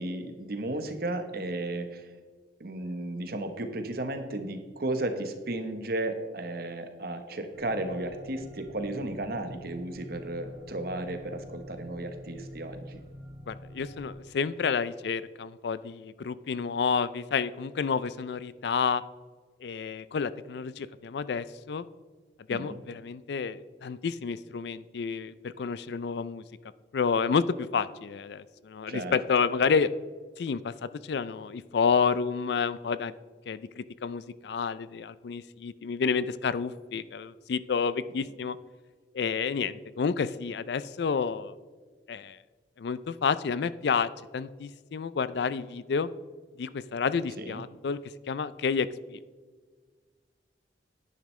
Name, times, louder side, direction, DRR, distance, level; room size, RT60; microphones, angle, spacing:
voice 1, 0.0-2.1 2.6-13.0 22.5-22.8 28.9-29.2 47.4-47.6, right 1 dB, 55° right, 7 dB, 1.0 m, -34 dB
sound 1, 7.5-14.1, equal, 20° right, 2.8 m, -46 dB
voice 2, 13.5-19.0 19.6-21.9 22.5-26.4 26.9-29.9 30.4-30.7 31.0-33.1 33.5-38.6 39.1-41.5 42.1-42.4 42.8-46.1 46.6-48.0 48.3-49.2, left 5 dB, 65° left, 16 dB, 0.4 m, -30 dB
10.5 x 9.6 x 3.2 m, 1.5 s
head